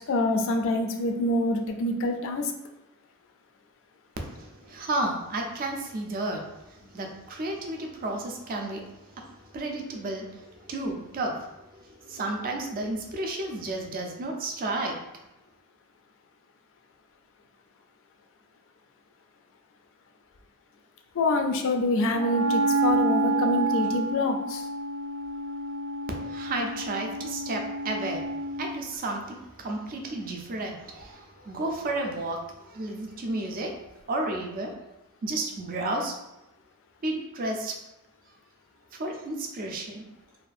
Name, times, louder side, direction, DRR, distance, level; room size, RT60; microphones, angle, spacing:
voice 1, 0.1-2.5 21.1-24.7, left 2 dB, 60° left, 5 dB, 0.3 m, -26 dB
voice 2, 4.4-6.4 6.9-8.8 9.5-11.4 12.0-15.0 26.2-28.3 28.6-32.4 32.7-33.7 34.1-34.7 35.2-36.1 37.0-37.7 39.0-40.0, right 2 dB, 40° right, 2 dB, 0.4 m, -32 dB
Wind instrument woodwind instrument, 22.1-28.8, right 2 dB, 85° right, 0.6 m, -29 dB
2.6 x 2.3 x 2.5 m, 0.95 s
head